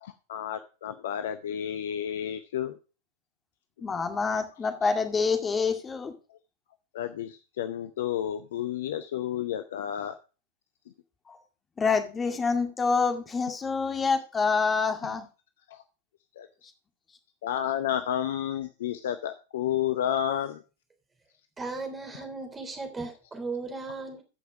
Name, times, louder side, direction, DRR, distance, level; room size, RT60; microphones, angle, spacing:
voice 1, 0.0-2.7 6.9-10.2 15.7-15.8 16.4-16.5 17.4-20.6, left 10 dB, 60° left, 10 dB, 0.7 m, -31 dB
voice 2, 3.8-6.1 11.3-11.4 11.8-15.3, left 5 dB, 20° left, 6 dB, 2.1 m, -27 dB
voice 3, 21.6-24.2, right 3 dB, 15° right, 5 dB, 3.3 m, -36 dB
15.0 x 5.8 x 4.8 m, 0.34 s
figure-of-eight pair, 90°, 0 cm